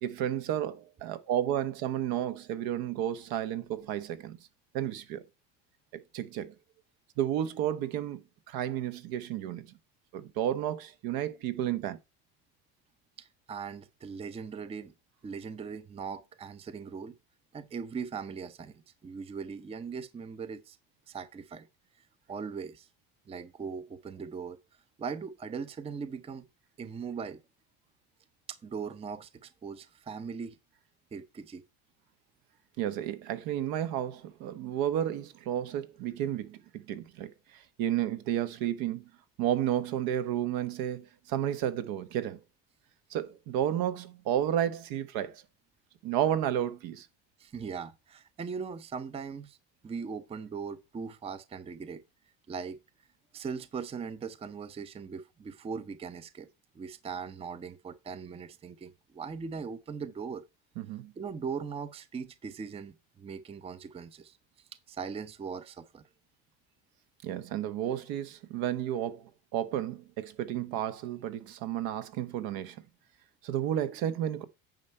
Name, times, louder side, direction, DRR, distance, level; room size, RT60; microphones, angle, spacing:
voice 1, 0.0-4.4 4.7-5.2 5.9-6.5 7.2-8.2 8.5-9.7 10.1-12.0 32.8-39.1 39.4-42.4 43.1-45.4 46.0-47.1 60.8-61.1 67.2-72.8 73.4-74.4, right 11 dB, 65° right, 1.1 m, -32 dB
voice 2, 13.2-14.9 15.2-17.1 17.5-20.8 21.1-21.7 22.3-22.9 23.3-24.6 25.0-26.5 26.8-27.4 28.5-30.6 31.1-31.6 47.4-49.6 49.8-52.0 52.5-52.8 53.3-56.5 56.7-60.5 61.2-64.4 64.9-66.0, right 5 dB, 15° right, 0.6 m, -39 dB
9.4 x 5.5 x 4.4 m
supercardioid pair, 125°, 39 cm